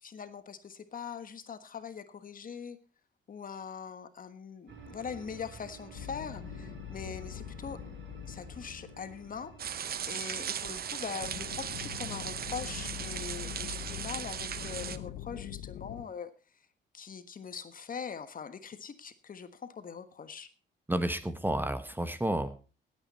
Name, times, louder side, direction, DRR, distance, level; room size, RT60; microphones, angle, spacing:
voice 1, 0.0-2.8 3.3-7.8 8.3-16.3 16.9-20.5, left 6 dB, 45° left, 11 dB, 1.4 m, -42 dB
sound 1, 4.7-13.5, right 4 dB, 65° right, 4.4 m, -52 dB
sound 2, 5.9-10.2 11.2-16.0, left 12 dB, 85° left, 0.9 m, -44 dB
sound 3, 9.6-15.0, right 8 dB, 50° right, 0.9 m, -37 dB
voice 2, 20.9-22.7, right 1 dB, 10° right, 11 dB, 1.2 m, -31 dB
17.0 x 9.0 x 4.2 m, 0.34 s
cardioid pair, 90°, 20 cm